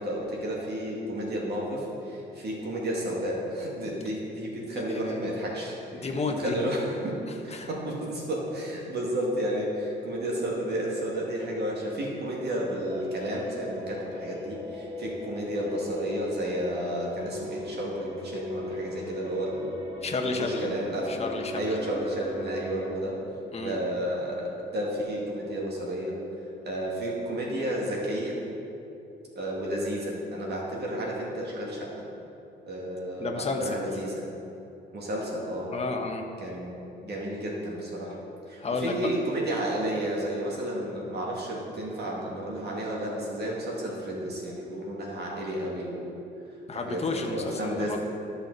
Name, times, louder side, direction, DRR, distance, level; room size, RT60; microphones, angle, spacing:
voice 1, 0.0-6.1 6.4-7.2 7.4-19.7 20.2-21.1 21.5-23.2 23.6-26.2 26.6-28.4 29.3-31.9 32.7-34.2 34.9-35.8 36.4-38.2 38.5-46.1 46.7-48.0, right 1 dB, 55° right, -3 dB, 2.0 m, -32 dB
voice 2, 4.7-5.2 5.9-6.6 7.5-7.7 20.0-20.7 21.1-21.6 23.5-23.8 33.2-33.8 35.7-36.3 38.6-39.1 46.7-48.0, left 3 dB, 30° left, 3 dB, 1.1 m, -31 dB
sound 1, 12.9-22.9, left 1 dB, 25° right, 1.4 m, -39 dB
13.0 x 5.7 x 4.0 m, 2.8 s
cardioid pair, 90°, 20 cm